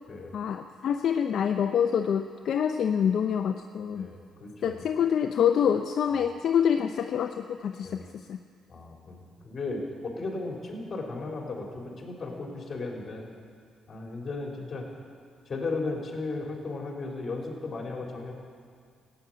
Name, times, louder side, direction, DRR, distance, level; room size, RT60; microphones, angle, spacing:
voice 1, 0.3-4.1 4.6-8.4, left 8 dB, 65° left, 6 dB, 0.6 m, -26 dB
voice 2, 3.9-4.8 7.8-8.0 8.7-9.2 9.4-13.3 13.9-14.9 15.5-18.3, left 3 dB, 40° left, 0 dB, 3.4 m, -35 dB
15.5 x 8.8 x 9.0 m, 2.2 s
cardioid pair, 90°, 0 cm